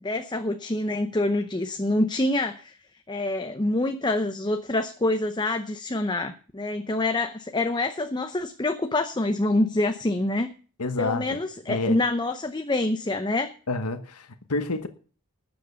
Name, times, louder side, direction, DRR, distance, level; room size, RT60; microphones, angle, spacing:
voice 1, 0.0-2.8 3.1-10.5 11.0-13.5, left 2 dB, 20° left, 7 dB, 0.7 m, -26 dB
voice 2, 10.8-11.4 11.7-12.0 13.7-14.9, left 3 dB, 85° left, 9 dB, 1.2 m, -28 dB
12.5 x 7.8 x 6.9 m, 0.39 s
head